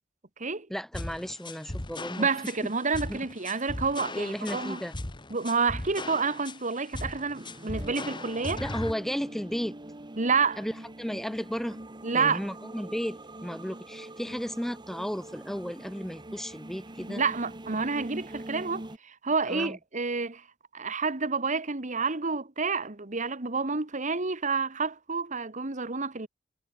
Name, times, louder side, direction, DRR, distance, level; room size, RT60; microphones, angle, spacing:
voice 1, 0.7-2.3 3.1-3.2 4.1-4.9 8.6-9.8 10.6-11.8 12.1-17.2 19.5-19.8, equal, ahead, 0.6 m, -34 dB
sound 1, 0.9-8.9, left 2 dB, 25° left, 1.6 m, -38 dB
voice 2, 2.2-4.8 5.3-8.6 10.2-10.6 12.0-12.4 17.1-20.4 20.7-26.3, right 4 dB, 40° right, 1.7 m, -29 dB
sound 2, 7.3-19.0, right 1 dB, 25° right, 1.6 m, -44 dB
head